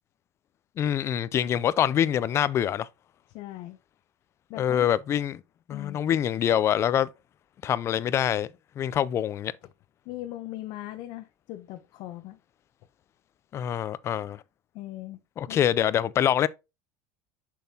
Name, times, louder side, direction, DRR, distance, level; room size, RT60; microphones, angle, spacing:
voice 1, 0.8-2.9 4.5-5.4 5.7-7.1 7.6-8.5 8.8-9.5 13.5-14.4 15.4-16.5, left 10 dB, 30° left, 0.4 m, -25 dB
voice 2, 3.3-3.8 4.5-4.9 5.7-6.0 10.1-12.4 14.7-15.2 15.5-15.6, left 15 dB, 55° left, 0.7 m, -39 dB
6.8 x 6.2 x 2.8 m
supercardioid pair, 145°, 9 cm